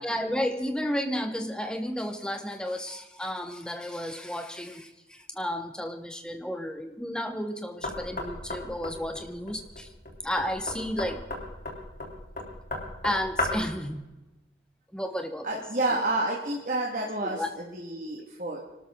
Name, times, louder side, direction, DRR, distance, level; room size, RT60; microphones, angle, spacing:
voice 1, 0.0-9.9 10.2-11.2 13.0-14.0 14.9-15.5 17.2-17.5, equal, 5° left, 6 dB, 1.2 m, -32 dB
Knock, 7.8-13.8, left 2 dB, 50° left, 3.4 m, -35 dB
voice 2, 15.4-18.6, right 2 dB, 45° right, -2 dB, 2.1 m, -30 dB
24.5 x 13.0 x 3.9 m, 1.0 s
head